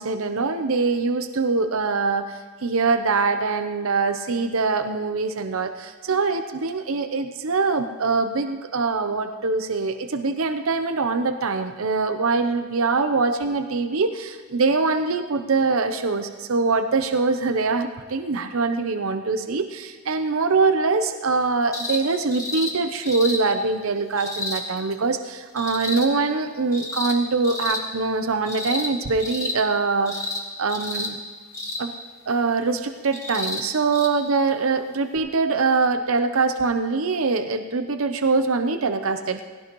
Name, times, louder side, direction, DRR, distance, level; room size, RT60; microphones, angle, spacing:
voice 1, 0.0-2.3 2.6-30.3 30.6-31.2 31.8-31.9 32.3-39.5, right 4 dB, 75° right, 7 dB, 0.7 m, -23 dB
sound 1, 21.7-22.0 22.3-22.7 23.0-23.4 24.2-24.6 25.6-26.0 26.7-27.1 27.4-27.8 28.5-28.9 29.2-29.6 30.0-30.4 30.7-31.1 31.5-31.8 33.1-33.6 33.9-34.1 35.2-35.3, left 2 dB, 15° left, 2.0 m, -30 dB
19.0 x 16.5 x 3.1 m, 1.4 s
head